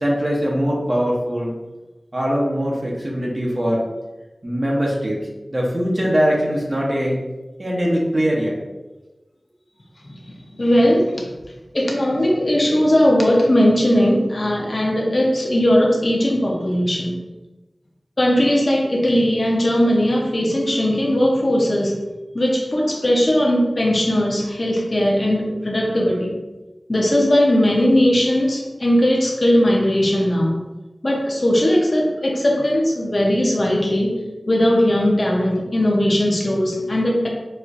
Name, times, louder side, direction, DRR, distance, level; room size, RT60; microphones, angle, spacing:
voice 1, 0.0-1.5 2.1-3.9 4.4-5.2 5.5-7.2 7.6-8.6, equal, 40° right, -3 dB, 0.7 m, -21 dB
voice 2, 10.6-11.3 11.7-17.1 18.2-21.9 22.3-26.4 26.9-30.5 31.0-34.2 34.5-37.3, equal, 50° left, -2 dB, 0.6 m, -18 dB
4.2 x 2.4 x 2.5 m, 1.1 s
wide cardioid pair, 60°, 0 cm